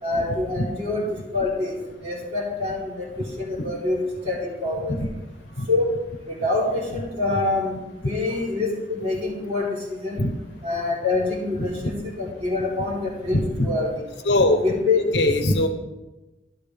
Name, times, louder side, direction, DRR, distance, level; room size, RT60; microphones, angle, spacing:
voice 1, 0.0-1.1 1.3-1.7 2.0-3.1 3.4-4.0 4.3-4.9 5.7-5.9 6.3-7.7 8.0-10.3 10.6-14.0 14.6-15.0, left 3 dB, 35° right, -6 dB, 3.7 m, -25 dB
voice 2, 13.3-13.7 14.2-14.6 15.1-15.7, left 1 dB, 80° left, 7 dB, 1.0 m, -21 dB
13.0 x 12.0 x 3.5 m, 1.1 s
head